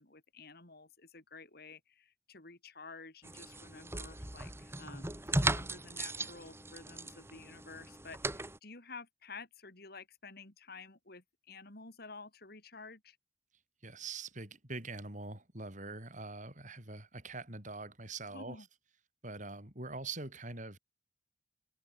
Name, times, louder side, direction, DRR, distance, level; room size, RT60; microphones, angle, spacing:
voice 1, 0.0-13.2 18.3-18.7, left 4 dB, 60° left, 4.1 m, -51 dB
sound 1, 3.2-8.6, right 2 dB, 15° right, 2.2 m, -37 dB
voice 2, 13.8-18.6 19.2-20.8, right 3 dB, 45° right, 7.3 m, -44 dB
head